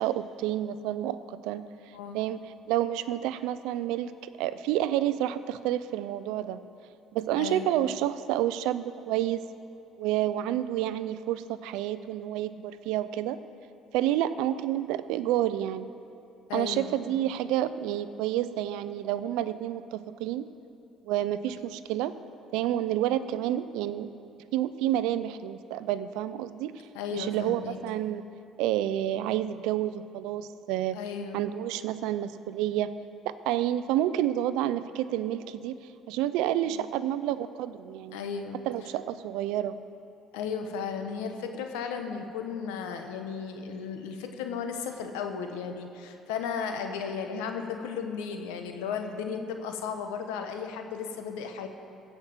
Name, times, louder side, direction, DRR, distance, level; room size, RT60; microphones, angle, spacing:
voice 1, 0.0-1.6 2.1-4.1 4.4-6.6 7.1-9.5 10.0-13.4 13.9-15.9 16.5-20.5 21.0-22.2 22.5-24.1 24.5-26.8 27.1-28.2 28.6-31.0 31.3-32.9 33.2-35.7 36.1-38.2 38.7-39.8, right 12 dB, 80° right, 13 dB, 0.5 m, -29 dB
voice 2, 7.4-7.7 16.5-16.9 26.9-27.8 30.9-31.5 36.7-36.9 38.1-38.6 40.3-51.7, left 6 dB, 90° left, 5 dB, 1.1 m, -35 dB
16.0 x 5.8 x 7.4 m, 2.8 s
supercardioid pair, 80°, 0 cm